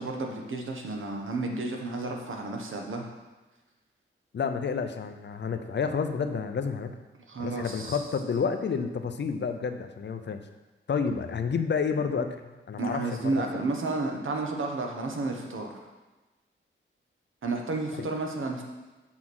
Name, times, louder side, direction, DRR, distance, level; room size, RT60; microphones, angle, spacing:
voice 1, 0.0-3.1 7.3-8.0 12.8-15.7 17.4-18.6, right 3 dB, 75° right, 1 dB, 1.4 m, -31 dB
voice 2, 4.3-6.9 7.4-10.4 10.9-13.6 18.0-18.1, left 5 dB, 60° left, 7 dB, 0.7 m, -30 dB
7.4 x 5.8 x 6.2 m, 1.2 s
wide cardioid pair, 175°, 21 cm